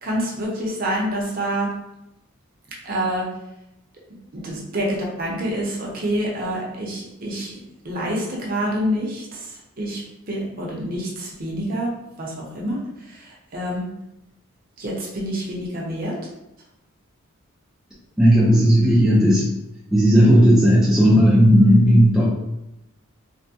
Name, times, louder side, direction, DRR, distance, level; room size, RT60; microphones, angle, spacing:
voice 1, 0.0-1.7 2.8-3.3 4.3-7.5 7.8-9.4 9.8-10.0 10.3-11.9 12.2-12.8 13.5-13.9 14.8-16.1, equal, 40° right, -3 dB, 0.7 m, -26 dB
voice 2, 18.2-19.5 19.9-22.2, equal, ahead, -7 dB, 0.4 m, -14 dB
3.3 x 2.1 x 2.7 m, 0.88 s
head